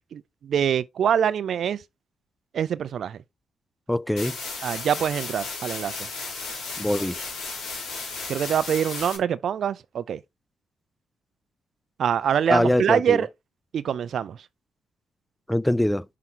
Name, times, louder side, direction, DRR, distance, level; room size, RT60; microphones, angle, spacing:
voice 1, 0.1-1.8 2.5-3.2 4.6-6.0 8.3-10.2 12.0-13.3 13.7-14.4, right 8 dB, 60° right, 0.4 m, -24 dB
voice 2, 3.9-4.3 6.8-7.2 12.5-13.2 15.5-16.0, left 1 dB, 5° left, 0.3 m, -23 dB
sound 1, 4.2-9.2, left 3 dB, 85° left, 3.9 m, -34 dB
5.9 x 5.5 x 3.8 m
cardioid pair, 90°, 0 cm